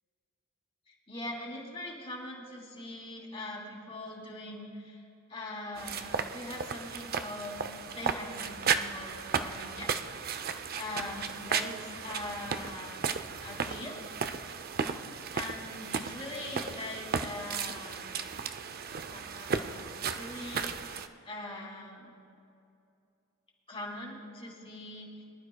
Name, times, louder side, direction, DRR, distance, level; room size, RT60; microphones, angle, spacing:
voice 1, 0.9-10.3 10.8-13.1 13.4-14.0 15.3-18.2 19.1-22.1 23.7-25.3, left 1 dB, 30° left, -2 dB, 2.5 m, -42 dB
sound 1, 5.8-21.1, right 6 dB, 45° right, 0.5 m, -35 dB
23.0 x 12.0 x 2.3 m, 2.5 s
head